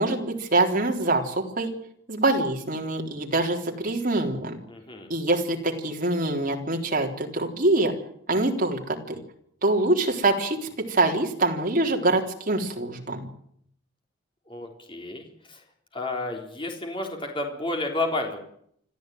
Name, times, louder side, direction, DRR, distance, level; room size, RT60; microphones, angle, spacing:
voice 1, 0.0-1.7 2.1-4.6 5.1-7.9 8.3-9.2 9.6-10.6 10.9-13.3, right 2 dB, 45° right, 2 dB, 3.8 m, -24 dB
voice 2, 4.7-5.1 14.5-15.6 15.9-18.4, left 2 dB, 25° left, 3 dB, 3.8 m, -31 dB
25.5 x 14.0 x 9.3 m, 0.69 s
head